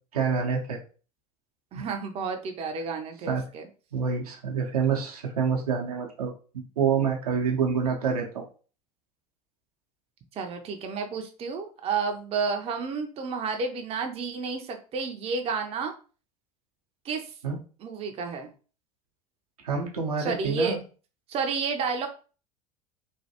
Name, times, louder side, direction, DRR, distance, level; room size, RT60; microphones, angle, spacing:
voice 1, 0.1-0.8 3.3-3.4 3.9-8.4 17.4-17.6 19.6-20.8, right 6 dB, 80° right, 0 dB, 0.7 m, -27 dB
voice 2, 1.7-3.6 10.4-15.9 17.0-17.3 17.8-18.5 20.2-20.8 21.3-22.1, right 5 dB, 30° right, 4 dB, 0.5 m, -31 dB
3.2 x 2.2 x 2.8 m, 0.37 s
hypercardioid pair, 80°, 19 cm